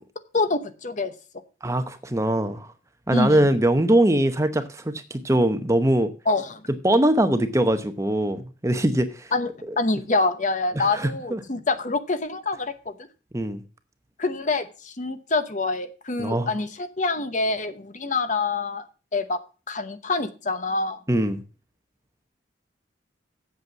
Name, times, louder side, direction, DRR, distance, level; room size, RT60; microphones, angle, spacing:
voice 1, 0.3-1.1 3.1-3.5 6.3-6.6 9.3-12.9 14.2-18.8 19.1-19.4 19.7-21.0, left 3 dB, 40° left, 0.9 m, -26 dB
voice 2, 1.6-2.7 3.1-6.1 6.8-9.3 10.8-11.4 13.3-13.6 16.2-16.5 21.1-21.4, right 1 dB, 15° right, 0.8 m, -22 dB
8.1 x 7.8 x 6.9 m
head